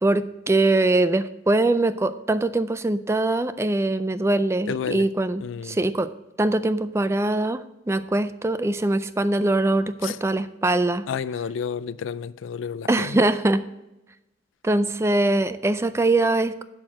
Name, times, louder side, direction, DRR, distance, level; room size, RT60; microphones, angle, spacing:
voice 1, 0.0-6.1 6.4-11.0 12.9-13.6 14.6-16.6, right 2 dB, 15° right, 0.3 m, -22 dB
voice 2, 4.7-5.1 5.4-5.8 10.0-10.2 11.1-13.2, left 7 dB, 90° left, 0.3 m, -31 dB
12.0 x 4.5 x 6.1 m
head